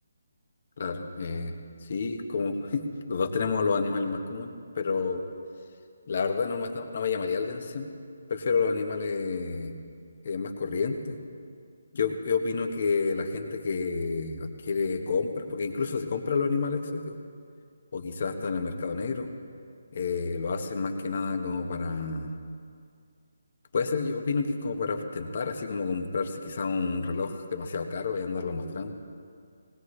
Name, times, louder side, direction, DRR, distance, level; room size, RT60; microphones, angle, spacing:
voice 1, 0.8-1.5 1.8-5.2 6.1-7.9 8.3-9.7 10.2-11.2 11.9-17.2 17.9-19.3 19.9-22.3 23.7-28.9, left 4 dB, 50° left, 5 dB, 1.5 m, -29 dB
20.0 x 19.5 x 3.3 m, 2.2 s
figure-of-eight pair, 160°, 0 cm